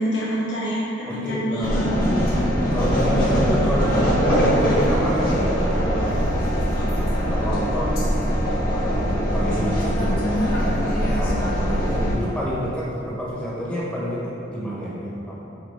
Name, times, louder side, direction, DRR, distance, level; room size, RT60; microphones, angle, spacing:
voice 1, 0.0-1.9, equal, 80° left, -6 dB, 0.9 m, -26 dB
voice 2, 1.0-1.9 2.7-6.2 7.2-8.0 8.6-10.2 10.5-10.7 11.1-15.4, equal, 5° left, -7 dB, 1.4 m, -29 dB
sound 1, 1.6-12.1, equal, 55° left, 1.4 m, -21 dB
7.8 x 4.5 x 3.8 m, 2.8 s
head